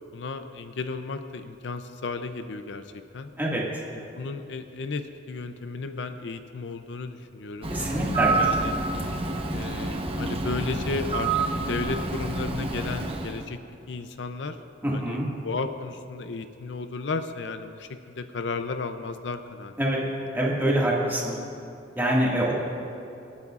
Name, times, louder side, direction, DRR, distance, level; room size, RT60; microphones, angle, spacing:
voice 1, 0.1-3.3 3.9-7.7 8.4-8.8 9.5-13.6 13.9-14.6 14.9-19.7 20.0-20.1 20.6-20.7, left 3 dB, 70° left, 9 dB, 0.5 m, -34 dB
Bird, 7.6-13.5, right 3 dB, 30° right, 0.9 m, -28 dB
voice 2, 7.7-8.3 8.6-8.7 14.8-15.3 19.8-20.0 20.3-21.4 22.0-22.6, right 1 dB, 10° right, -5 dB, 1.9 m, -25 dB
26.0 x 9.5 x 2.5 m, 2.7 s
head